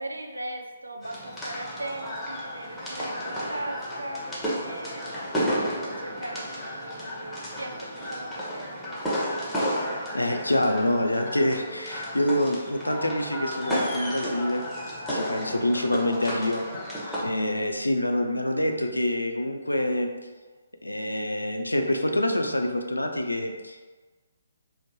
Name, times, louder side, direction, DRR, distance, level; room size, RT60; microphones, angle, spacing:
voice 1, 0.0-4.3 4.6-8.8, right 1 dB, 85° right, 4 dB, 0.4 m, -39 dB
sound 1, 1.0-17.2, equal, 5° left, 0.7 m, -32 dB
voice 2, 10.1-14.7 15.1-16.6 17.2-20.1 20.8-23.9, left 1 dB, 90° left, 5 dB, 0.3 m, -26 dB
3.7 x 2.1 x 2.9 m, 1.3 s
figure-of-eight pair, 135°, 0 cm